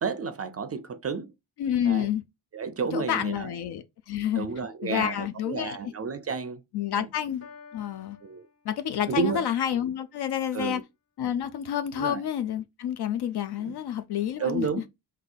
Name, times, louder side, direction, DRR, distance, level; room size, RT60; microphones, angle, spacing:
voice 1, 0.0-1.3 1.9-2.1 2.5-3.5 4.4-6.6 7.0-7.1 8.2-8.5 9.1-9.5 10.5-10.8 12.0-12.2 13.6-13.7 14.4-14.8, right 5 dB, 35° right, 0.4 m, -31 dB
voice 2, 1.6-2.2 2.9-4.5 4.8-5.9 6.7-7.5 7.7-8.2 8.6-10.8 11.2-14.7, left 10 dB, 65° left, 0.5 m, -29 dB
Piano, 7.4-9.4, left 5 dB, 35° left, 1.0 m, -51 dB
3.8 x 2.7 x 3.9 m
cardioid pair, 110°, 43 cm